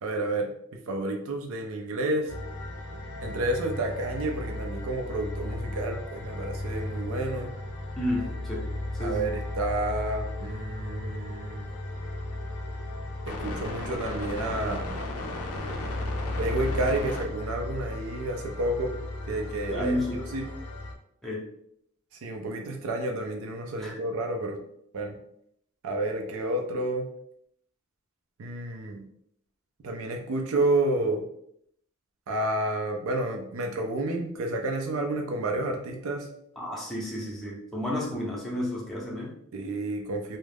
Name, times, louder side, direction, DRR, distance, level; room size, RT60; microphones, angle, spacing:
voice 1, 0.0-0.5 0.9-2.3 3.2-7.5 9.0-11.7 13.3-14.9 16.4-18.9 19.3-20.4 22.1-24.6 24.9-25.2 25.8-27.1 28.4-29.0 29.8-31.2 32.3-36.3 39.5-40.4, right 2 dB, 70° right, 3 dB, 0.4 m, -30 dB
sound 1, 2.3-20.9, left 1 dB, 85° left, 0.4 m, -35 dB
voice 2, 8.0-8.7 9.0-9.3 19.7-20.2 21.2-21.4 23.8-24.0 36.6-39.3, left 1 dB, ahead, -5 dB, 0.6 m, -31 dB
2.3 x 2.0 x 3.3 m, 0.72 s
head